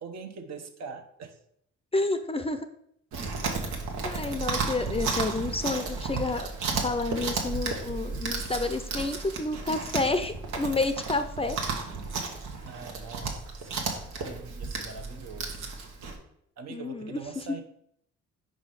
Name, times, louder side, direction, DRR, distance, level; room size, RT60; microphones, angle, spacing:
voice 1, 0.0-1.4 12.7-15.7 16.6-17.6, right 4 dB, 60° right, 6 dB, 1.0 m, -43 dB
voice 2, 1.9-2.6 4.0-6.5 6.8-11.6 16.7-17.2, left 3 dB, 20° left, 9 dB, 0.5 m, -29 dB
Chewing mastication, 3.1-16.2, right 4 dB, 85° right, 1.3 m, -33 dB
5.1 x 4.9 x 5.7 m, 0.71 s
cardioid pair, 90°, 30 cm